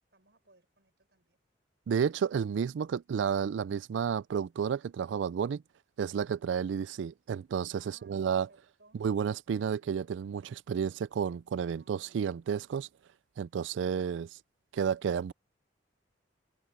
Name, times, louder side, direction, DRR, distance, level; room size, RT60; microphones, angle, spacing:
voice 1, 0.0-1.4 7.8-9.0 11.7-12.1, right 2 dB, 65° right, 6.9 m, -64 dB
voice 2, 1.9-5.6 6.0-8.5 9.0-12.9 13.4-14.3 14.7-15.3, right 7 dB, 80° right, 0.3 m, -31 dB
head